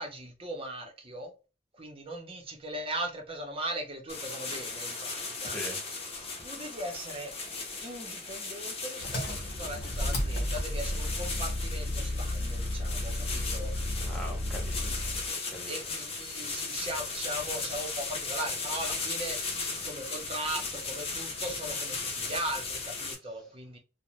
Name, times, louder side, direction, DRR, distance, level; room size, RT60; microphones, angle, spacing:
voice 1, 0.0-1.3 1.8-5.6 6.4-7.3 7.8-13.7 15.6-23.8, right 1 dB, 30° right, 0.7 m, -39 dB
sound 1, 4.1-23.1, left 4 dB, 35° left, 0.7 m, -37 dB
voice 2, 5.4-5.8 14.0-15.0 15.3-15.8, equal, ahead, 1.0 m, -42 dB
Engine, 9.0-15.3, left 1 dB, 65° left, 0.9 m, -33 dB
2.5 x 2.1 x 3.1 m
head